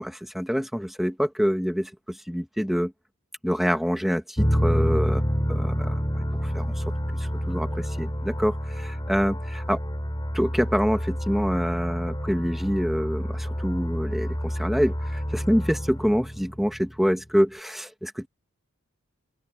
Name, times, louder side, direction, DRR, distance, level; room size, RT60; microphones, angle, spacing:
voice 1, 0.0-2.9 3.4-5.2 5.5-6.8 7.2-9.8 10.3-18.3, equal, ahead, 1.7 m, -26 dB
sound 1, 4.4-17.0, equal, 20° left, 6.1 m, -28 dB
open air
head